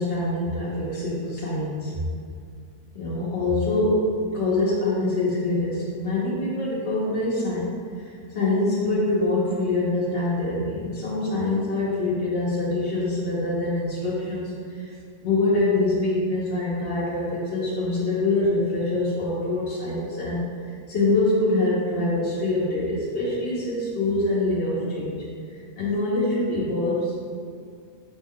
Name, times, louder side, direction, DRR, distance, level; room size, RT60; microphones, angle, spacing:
voice 1, 0.0-2.0 2.9-7.7 8.0-14.5 14.8-14.9 15.2-20.4 20.9-25.2 25.8-27.1, left 2 dB, 75° left, -9 dB, 1.2 m, -24 dB
6.3 x 2.2 x 3.5 m, 2.2 s
omnidirectional pair, 1.1 m